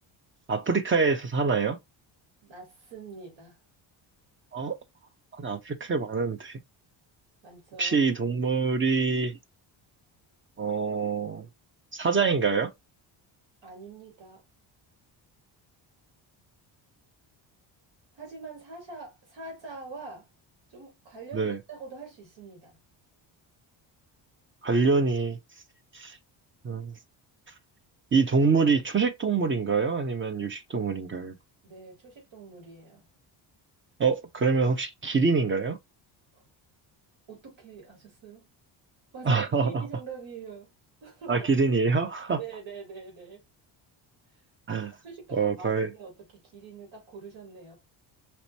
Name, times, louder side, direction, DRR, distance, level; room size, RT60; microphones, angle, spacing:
voice 1, 0.5-1.8 4.5-4.8 5.3-6.6 7.8-9.4 10.6-11.5 11.9-12.7 21.3-21.6 24.6-25.4 25.9-26.2 26.6-26.9 28.1-31.3 34.0-35.8 39.3-39.8 41.3-42.4 44.7-44.9 45.3-45.9, right 4 dB, 25° right, 0.8 m, -25 dB
voice 2, 2.4-3.6 7.4-8.1 13.6-14.4 18.1-20.3 20.7-22.8 31.6-33.0 36.3-36.4 37.3-38.5 39.1-40.7 41.0-41.5 42.3-43.4 45.0-47.8, right 4 dB, 70° right, 2.7 m, -44 dB
4.4 x 2.9 x 2.7 m
cardioid pair, 80°, 48 cm